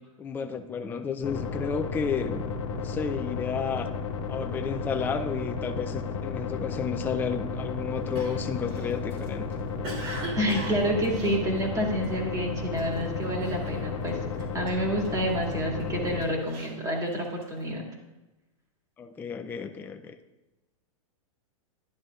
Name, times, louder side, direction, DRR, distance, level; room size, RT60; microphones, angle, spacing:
voice 1, 0.2-3.9 4.3-9.5 19.0-20.2, left 6 dB, 10° left, 6 dB, 0.4 m, -32 dB
sound 1, 1.2-16.2, left 5 dB, 55° left, 1.3 m, -33 dB
Cough, 8.1-12.2 12.7-13.0 13.4-14.1 14.4-15.6 16.1-17.6, right 3 dB, 50° right, 3.0 m, -40 dB
voice 2, 10.3-14.2 14.5-17.8, equal, 20° right, 0 dB, 2.3 m, -28 dB
11.0 x 10.5 x 2.5 m, 1.1 s
hypercardioid pair, 125°, 17 cm